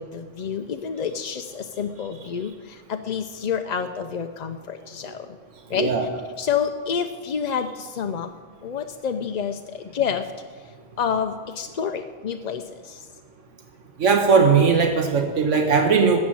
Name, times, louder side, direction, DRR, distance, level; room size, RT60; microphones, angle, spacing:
voice 1, 0.0-5.4 5.7-5.9 6.4-8.3 8.6-10.3 11.0-13.1, left 7 dB, 50° left, 7 dB, 0.5 m, -28 dB
voice 2, 5.7-6.0 14.0-16.2, right 5 dB, 90° right, 4 dB, 1.4 m, -18 dB
13.5 x 7.4 x 8.6 m, 1.5 s
omnidirectional pair, 1.2 m